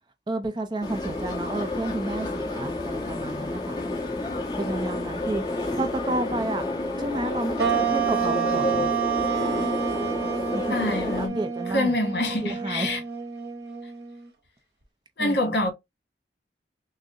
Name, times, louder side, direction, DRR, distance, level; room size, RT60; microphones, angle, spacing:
voice 1, 0.3-3.8 4.6-5.4 5.7-6.7 7.0-8.9 10.5-11.9 12.4-12.9 15.2-15.6, right 2 dB, 25° right, 0.5 m, -31 dB
sound 1, 0.8-11.3, left 2 dB, 25° left, 1.2 m, -30 dB
sound 2, 7.6-14.3, right 7 dB, 70° right, 0.9 m, -28 dB
voice 2, 10.7-13.0 15.2-15.7, left 2 dB, 70° left, 1.5 m, -26 dB
6.2 x 2.1 x 2.5 m
head